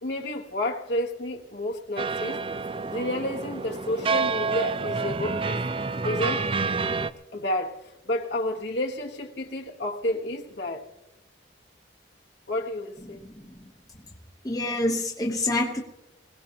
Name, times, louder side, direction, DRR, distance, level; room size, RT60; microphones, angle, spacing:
voice 1, 0.0-2.4 2.9-5.6 6.0-6.5 7.3-10.9 12.5-13.2, left 1 dB, 65° left, 1 dB, 1.3 m, -30 dB
sound 1, 2.0-7.1, right 4 dB, 30° right, 0.4 m, -28 dB
voice 2, 14.4-15.8, left 1 dB, 20° left, -1 dB, 1.0 m, -26 dB
21.0 x 17.5 x 2.9 m, 0.98 s
head